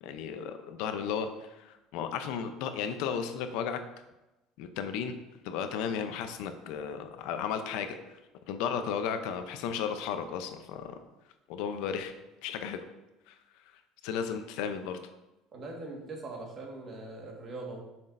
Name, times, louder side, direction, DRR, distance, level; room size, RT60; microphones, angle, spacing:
voice 1, 0.0-3.8 4.6-8.2 8.5-11.0 11.5-12.1 12.4-12.8 13.3-13.4 14.0-15.0, left 7 dB, 75° left, 8 dB, 0.6 m, -34 dB
voice 2, 15.5-17.8, right 2 dB, 35° right, 0 dB, 1.6 m, -41 dB
7.3 x 6.0 x 2.6 m, 0.99 s
cardioid pair, 130°, 0 cm